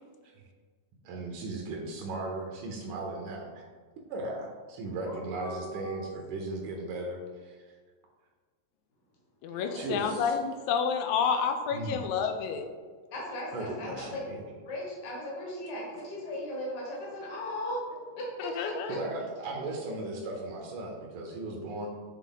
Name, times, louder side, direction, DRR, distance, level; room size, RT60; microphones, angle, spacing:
voice 1, 1.0-3.6 4.1-7.8 9.5-10.4 11.7-12.1 13.5-14.4 18.9-21.9, right 2 dB, 75° right, 0 dB, 2.2 m, -37 dB
voice 2, 5.0-6.0 9.6-9.9 13.1-14.2 14.7-17.8 18.2-19.0, left 1 dB, 40° left, -3 dB, 1.6 m, -37 dB
voice 3, 9.4-12.6 18.4-18.9, left 6 dB, 80° left, 6 dB, 1.8 m, -29 dB
7.2 x 4.1 x 3.8 m, 1.5 s
omnidirectional pair, 3.6 m